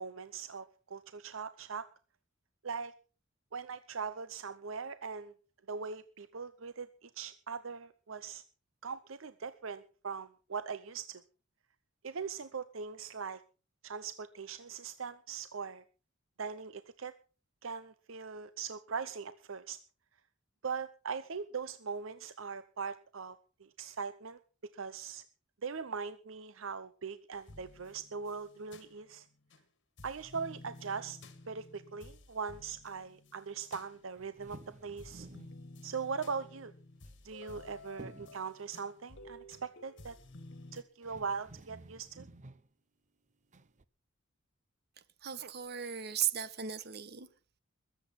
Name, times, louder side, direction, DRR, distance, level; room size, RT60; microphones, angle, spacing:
voice 1, 0.0-1.9 2.6-2.9 3.5-5.3 5.7-8.4 8.8-11.2 12.0-13.4 13.8-15.8 16.4-17.1 17.6-19.8 20.6-24.4 24.7-25.2 25.6-29.3 30.0-31.2 31.5-35.3 35.8-36.7 37.2-40.2 40.7-42.3, right 5 dB, 70° right, 0.8 m, -40 dB
sound 1, 27.3-29.6 30.0-34.6 35.0-40.8, left 2 dB, 60° left, 2.0 m, -53 dB
sound 2, 34.2-35.6 37.0-37.7 38.0-38.5 40.5-40.6 41.0-42.7 43.5-43.8, right 2 dB, 35° right, 0.8 m, -52 dB
voice 2, 45.2-47.3, right 9 dB, 55° right, 1.2 m, -36 dB
21.0 x 8.2 x 5.8 m
head